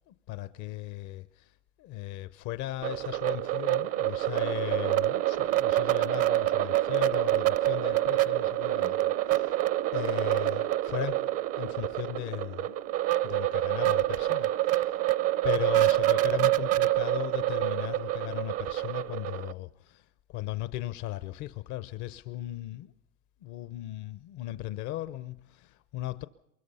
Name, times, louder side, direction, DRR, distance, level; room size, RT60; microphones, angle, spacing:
voice 1, 0.1-1.5 1.8-9.6 9.9-11.3 11.6-12.8 13.2-15.0 15.4-22.9 23.4-26.3, left 15 dB, 65° left, 0.8 m, -37 dB
sound 1, 2.8-19.5, right 15 dB, 45° right, 0.7 m, -27 dB
23.5 x 22.0 x 5.6 m
supercardioid pair, 100°, 33 cm